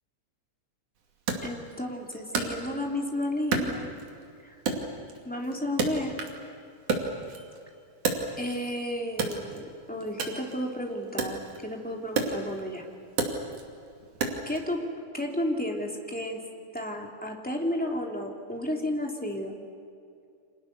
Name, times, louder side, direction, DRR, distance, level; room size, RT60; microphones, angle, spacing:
Wood, 1.3-3.1 3.5-4.3 4.7-6.5 6.8-8.7 9.1-14.6, right 4 dB, 55° right, 3.8 m, -32 dB
voice 1, 1.4-3.9 4.4-4.6 5.2-6.1 8.4-12.8 14.5-14.8 15.1-16.4 16.7-19.6, left 1 dB, 5° left, 0 dB, 2.2 m, -32 dB
30.0 x 26.0 x 6.8 m, 2.5 s
omnidirectional pair, 4.3 m